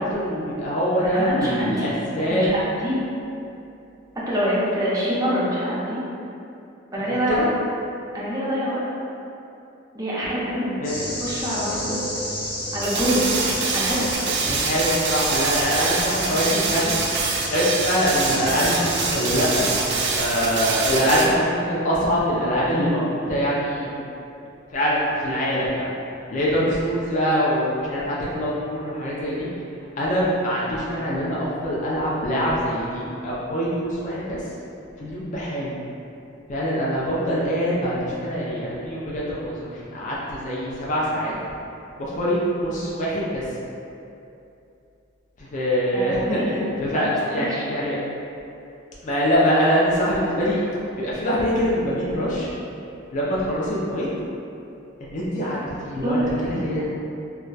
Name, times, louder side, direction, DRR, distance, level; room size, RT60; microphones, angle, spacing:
voice 1, 0.0-2.5 7.1-7.5 10.8-11.1 14.5-16.9 17.4-19.7 20.2-23.9 24.7-25.9 26.3-29.5 30.0-34.4 35.0-35.7 36.5-41.3 42.0-43.4 45.4-48.0 49.0-50.6 51.0-52.5 53.1-54.1 55.0-56.9, equal, 40° left, -7 dB, 0.4 m, -24 dB
voice 2, 1.0-1.9 2.2-3.0 4.3-6.0 6.9-7.5 8.1-8.8 9.9-10.8 11.2-12.0 12.7-13.3 13.7-14.2 45.9-46.6 46.9-47.1 47.4-47.6 56.0-56.6, equal, 20° right, -8 dB, 0.6 m, -25 dB
sound 1, 10.8-20.2, left 1 dB, 55° left, 0.9 m, -31 dB
sound 2, 12.8-21.3, right 4 dB, 55° right, 0.3 m, -25 dB
2.3 x 2.2 x 3.8 m, 2.7 s
head